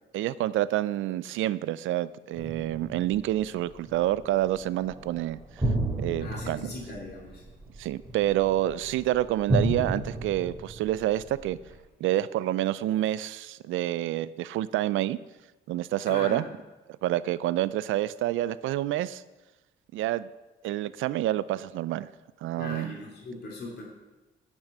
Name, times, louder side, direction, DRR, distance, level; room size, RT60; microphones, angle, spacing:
voice 1, 0.1-5.4 6.0-6.7 7.8-11.6 12.0-15.2 15.7-16.4 17.0-19.2 19.9-20.3 20.6-22.1 22.4-23.0, right 14 dB, 80° right, 18 dB, 0.5 m, -28 dB
sound 1, 2.3-11.8, right 1 dB, 15° right, 2.8 m, -33 dB
voice 2, 6.2-7.4 16.1-16.4 22.6-23.8, left 2 dB, 55° left, -2 dB, 2.7 m, -39 dB
10.0 x 6.3 x 7.3 m, 1.1 s
cardioid pair, 90°, 20 cm